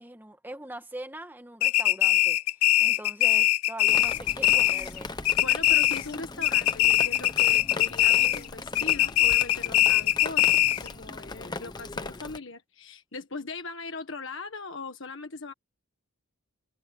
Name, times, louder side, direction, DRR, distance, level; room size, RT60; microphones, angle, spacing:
voice 1, 0.0-2.4 2.8-5.1, right 1 dB, 10° right, 1.8 m, -42 dB
sound 1, 1.6-5.0 5.2-6.2 6.4-8.5 8.8-10.9, left 14 dB, 85° left, 0.5 m, -22 dB
Drip, 3.9-12.4, left 3 dB, 20° left, 0.9 m, -39 dB
voice 2, 5.4-15.5, left 3 dB, 60° left, 1.6 m, -40 dB
head